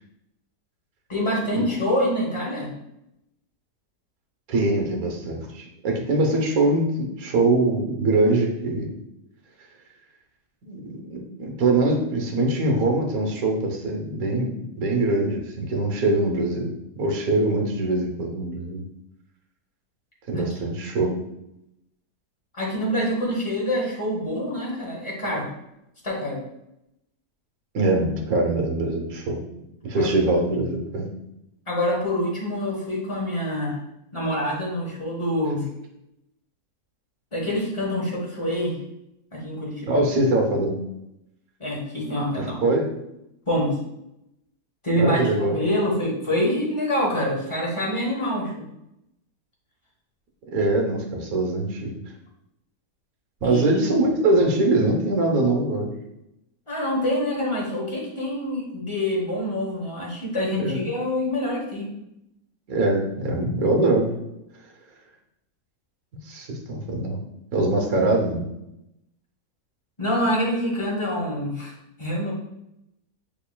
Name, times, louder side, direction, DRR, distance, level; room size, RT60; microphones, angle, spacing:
voice 1, 1.1-2.7 20.3-20.5 22.5-25.5 26.0-26.4 30.0-30.1 31.7-33.8 34.1-35.6 37.3-38.8 39.3-40.0 41.6-42.6 43.5-43.8 44.8-48.6 53.4-53.6 56.7-61.9 70.0-71.7 72.0-72.3, equal, 25° left, -3 dB, 0.9 m, -26 dB
voice 2, 4.5-8.9 10.6-16.7 16.9-18.8 20.3-21.1 27.7-29.4 29.8-31.1 39.9-40.8 42.6-42.9 45.0-45.6 50.5-51.9 53.4-55.9 60.6-60.8 62.7-64.1 66.2-67.2 67.5-68.4, right 2 dB, 65° right, 1 dB, 1.2 m, -23 dB
6.4 x 3.1 x 2.2 m, 0.85 s
omnidirectional pair, 1.7 m